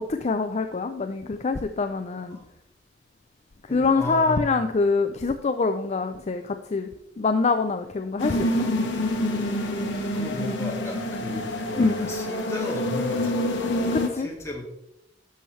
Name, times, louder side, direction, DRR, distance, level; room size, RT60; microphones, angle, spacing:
voice 1, 0.0-2.4 3.7-6.9 7.2-8.7 11.8-12.1 13.9-14.3, left 4 dB, 35° left, 8 dB, 0.4 m, -25 dB
voice 2, 3.7-4.6 10.1-13.4 14.1-14.7, left 1 dB, 15° left, -2 dB, 2.1 m, -35 dB
sound 1, 8.2-14.1, left 1 dB, 80° left, 1.2 m, -27 dB
11.0 x 7.0 x 3.2 m, 0.83 s
head